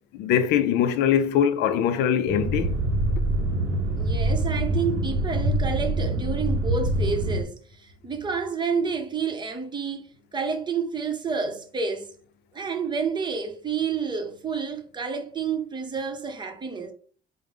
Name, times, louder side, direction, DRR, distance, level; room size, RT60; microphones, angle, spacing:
voice 1, 0.1-2.7, left 9 dB, 85° left, 0.5 m, -22 dB
sound 1, 2.3-7.4, right 1 dB, 75° right, 0.6 m, -25 dB
voice 2, 3.9-12.1 12.5-16.9, right 5 dB, 25° right, 0.7 m, -29 dB
4.8 x 2.0 x 3.5 m
cardioid pair, 110°, 17 cm